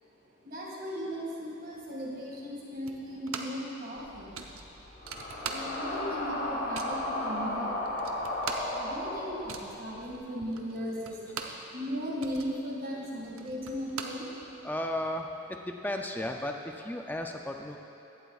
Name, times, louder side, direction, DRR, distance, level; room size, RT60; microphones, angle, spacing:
voice 1, 0.2-14.6, equal, 45° right, -4 dB, 2.1 m, -38 dB
sound 1, 2.9-3.7 4.0-4.1 4.3-6.0 6.3-7.0 7.6-7.7 7.9-11.7 12.0-14.8, right 5 dB, 80° right, 0.8 m, -41 dB
sound 2, 4.0-10.1, left 1 dB, 40° left, 2.8 m, -35 dB
voice 2, 14.6-17.8, left 1 dB, 10° left, 3 dB, 0.4 m, -34 dB
16.5 x 12.0 x 2.4 m, 2.9 s
head